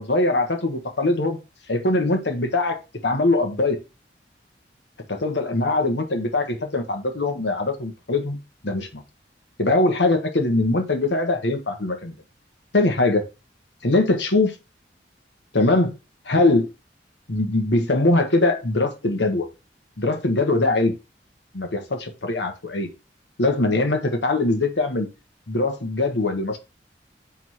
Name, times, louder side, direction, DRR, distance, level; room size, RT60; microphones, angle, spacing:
voice 1, 0.0-1.4 1.7-3.8 5.1-8.4 8.6-9.0 9.6-12.1 12.7-13.2 13.8-14.5 15.5-15.9 16.2-16.7 17.3-19.5 20.0-20.9 21.5-22.9 23.4-25.1 25.5-26.6, left 2 dB, 80° left, 1.3 m, -22 dB
4.8 x 3.7 x 5.6 m
head